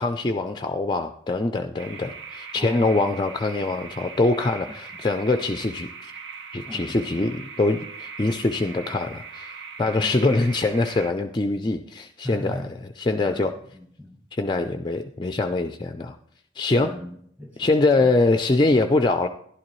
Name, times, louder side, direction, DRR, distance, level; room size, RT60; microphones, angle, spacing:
voice 1, 0.0-6.1 6.5-9.5 9.8-13.5 14.3-16.2 16.6-16.9 17.6-19.3, left 2 dB, 25° left, 7 dB, 0.4 m, -23 dB
sound 1, 1.8-11.1, right 5 dB, 65° right, 0.8 m, -40 dB
voice 2, 2.5-3.1 6.7-7.3 9.8-10.2 12.2-12.7 13.3-14.2 16.8-17.6, equal, 10° right, 4 dB, 1.3 m, -39 dB
11.5 x 11.5 x 3.1 m, 0.67 s
head